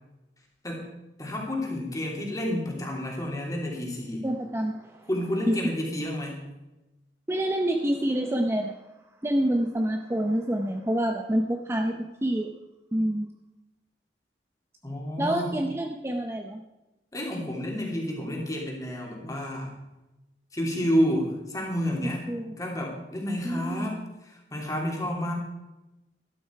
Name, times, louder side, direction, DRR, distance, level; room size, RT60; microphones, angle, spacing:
voice 1, 1.2-4.2 5.1-6.4 14.8-15.5 17.1-19.7 20.5-22.3 22.6-24.1 24.5-25.3, equal, 20° left, -1 dB, 3.0 m, -30 dB
voice 2, 4.2-5.1 5.5-5.6 7.3-8.8 9.2-12.5 12.9-13.3 15.2-16.6 22.3-22.5 23.4-23.9, right 1 dB, 15° right, 3 dB, 0.7 m, -27 dB
12.5 x 12.0 x 4.7 m, 1.0 s
head